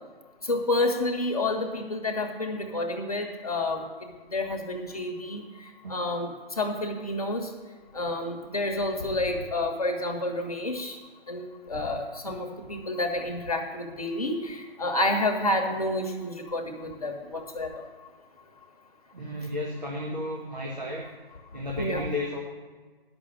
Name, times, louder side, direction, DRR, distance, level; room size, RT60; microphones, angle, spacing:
voice 1, 0.5-3.8 4.3-5.4 5.9-6.3 6.6-7.5 7.9-11.0 11.3-17.8 21.8-22.0, left 2 dB, 35° left, 2 dB, 1.1 m, -29 dB
voice 2, 19.1-21.1 21.5-22.4, left 1 dB, 45° right, -2 dB, 1.6 m, -33 dB
10.5 x 6.2 x 7.3 m, 1.4 s
figure-of-eight pair, 170°, 31 cm